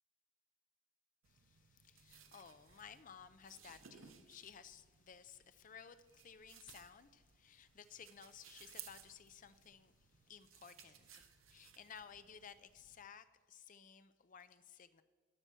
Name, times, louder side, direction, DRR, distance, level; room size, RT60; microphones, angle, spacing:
sound 1, 1.2-13.0, right 9 dB, 65° right, 0.9 m, -61 dB
voice 1, 1.3-15.0, left 7 dB, 35° left, 12 dB, 0.5 m, -57 dB
12.0 x 6.0 x 6.7 m, 1.5 s
head